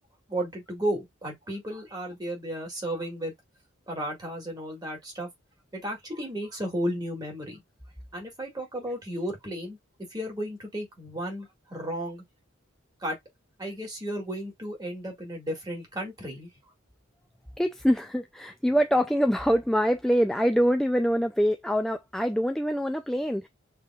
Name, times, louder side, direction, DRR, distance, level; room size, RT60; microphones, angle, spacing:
voice 1, 0.3-3.3 3.9-5.3 5.7-7.6 8.1-9.8 10.1-12.2 13.0-13.2 13.6-16.5, equal, 20° right, 2.0 m, -33 dB
voice 2, 17.6-23.5, equal, ahead, 0.3 m, -24 dB
6.6 x 3.0 x 2.4 m
head